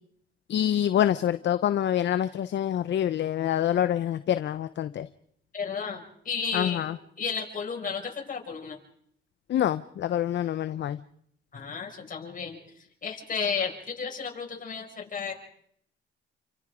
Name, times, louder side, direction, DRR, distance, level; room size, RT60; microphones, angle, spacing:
voice 1, 0.5-5.1 6.5-6.9 9.5-11.0, left 10 dB, 65° left, 12 dB, 0.9 m, -26 dB
voice 2, 5.5-6.9 7.2-8.8 11.5-15.3, left 6 dB, 45° left, 2 dB, 6.4 m, -33 dB
29.5 x 25.5 x 5.1 m, 0.69 s
cardioid pair, 90°, 20 cm